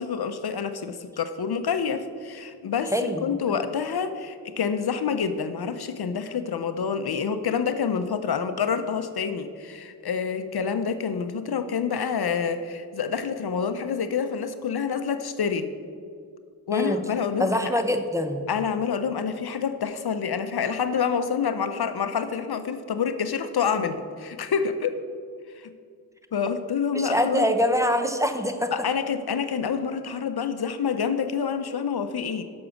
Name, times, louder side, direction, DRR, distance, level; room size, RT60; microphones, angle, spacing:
voice 1, 0.0-2.9 3.2-15.7 16.7-17.5 18.5-24.9 25.6-25.7 26.3-27.5 28.7-32.4, left 6 dB, 75° left, 10 dB, 0.6 m, -27 dB
voice 2, 2.9-3.4 16.7-17.0 17.4-18.5 26.9-28.7, equal, 10° right, 6 dB, 0.7 m, -24 dB
6.9 x 6.1 x 6.2 m, 2.2 s
wide cardioid pair, 45°, 38 cm